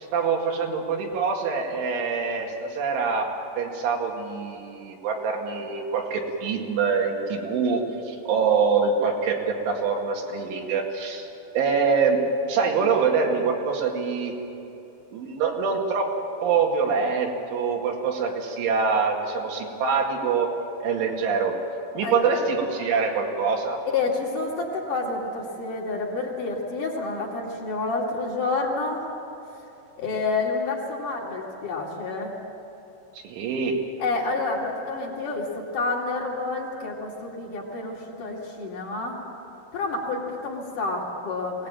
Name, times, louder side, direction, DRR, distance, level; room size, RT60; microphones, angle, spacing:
voice 1, 0.1-11.3 11.5-12.2 12.5-14.3 15.1-20.5 20.8-21.6 21.9-23.8 33.2-33.8, right 5 dB, 85° right, 0 dB, 4.6 m, -25 dB
voice 2, 22.0-22.4 23.9-29.1 30.0-32.3 34.0-39.2 39.7-41.7, left 3 dB, 50° left, -3 dB, 3.7 m, -29 dB
22.5 x 18.5 x 8.9 m, 2.9 s
omnidirectional pair, 5.4 m